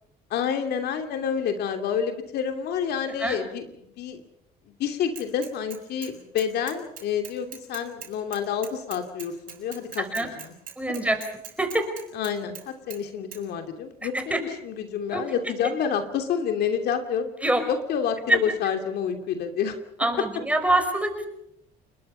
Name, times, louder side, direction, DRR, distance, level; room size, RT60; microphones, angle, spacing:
voice 1, 0.3-4.2 4.8-10.5 10.9-11.0 12.1-12.6 12.9-17.3 17.7-19.8, left 7 dB, 75° left, 6 dB, 2.9 m, -28 dB
Bicycle / Mechanisms, 5.2-6.1 6.4-12.6 12.9-13.0 13.3-13.4, right 8 dB, 55° right, 7.3 m, -41 dB
voice 2, 10.0-10.3 10.8-11.2 11.6-11.9 14.1-14.4 15.1-15.2 17.4-17.6 18.3-18.4 20.0-21.3, right 1 dB, 10° right, 6 dB, 5.4 m, -24 dB
29.0 x 21.5 x 5.7 m, 0.78 s
cardioid pair, 110°, 17 cm